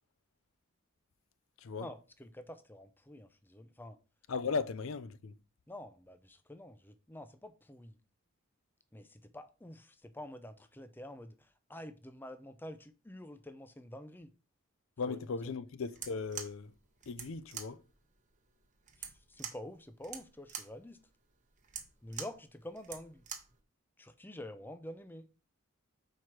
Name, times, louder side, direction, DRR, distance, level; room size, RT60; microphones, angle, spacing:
voice 1, 1.8-4.0 5.7-8.0 8.9-14.3 15.0-15.2 19.0-21.0 22.0-23.2 24.0-25.3, left 1 dB, 10° left, 0.5 m, -48 dB
voice 2, 4.3-5.3 15.0-16.7 17.1-17.8, left 4 dB, 70° left, 0.5 m, -37 dB
sound 1, 15.9-23.6, right 8 dB, 35° right, 1.0 m, -46 dB
4.7 x 4.7 x 5.9 m
head